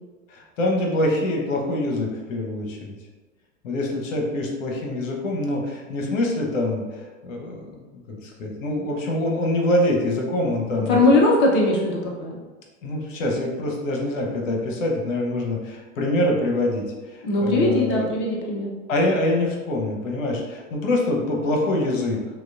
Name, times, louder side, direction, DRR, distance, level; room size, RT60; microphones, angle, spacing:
voice 1, 0.3-2.9 3.6-11.2 12.8-18.1 18.9-22.4, left 1 dB, 70° left, 0 dB, 1.0 m, -25 dB
voice 2, 10.9-12.4 17.2-18.7, left 2 dB, 30° left, -1 dB, 0.7 m, -20 dB
6.0 x 2.3 x 2.4 m, 1.3 s
hypercardioid pair, 95°, 41 cm